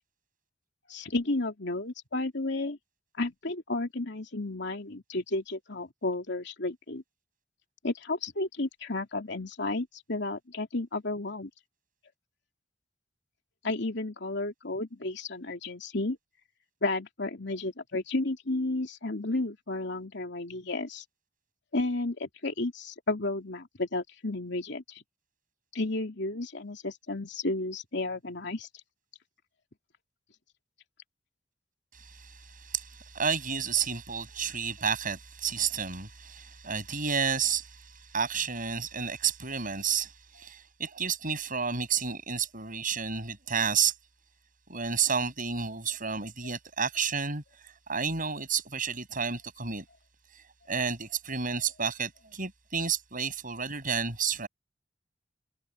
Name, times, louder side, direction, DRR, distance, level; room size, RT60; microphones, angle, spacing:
voice 1, 0.9-2.8 3.2-7.0 7.8-11.5 13.6-16.2 16.8-21.0 21.7-25.0 25.7-28.7, left 2 dB, 70° left, 3.1 m, -32 dB
voice 2, 31.9-37.9 38.1-43.9 44.7-47.4 47.9-49.8 50.7-54.5, right 6 dB, 45° right, 7.6 m, -31 dB
head